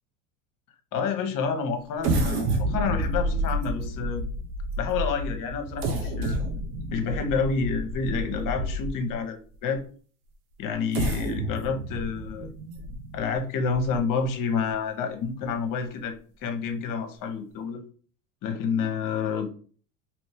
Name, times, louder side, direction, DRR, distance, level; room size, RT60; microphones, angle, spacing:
voice 1, 0.9-4.2 4.8-6.4 6.9-9.8 10.6-12.5 13.1-16.1 16.4-17.8 18.4-19.5, left 5 dB, 45° left, 6 dB, 0.8 m, -29 dB
sound 1, 2.0-9.1 9.7-9.8 10.7-14.2 14.7-14.8 15.2-15.4, right 1 dB, 75° right, 0.8 m, -30 dB
2.9 x 2.6 x 3.4 m, 0.43 s
hypercardioid pair, 75°, 44 cm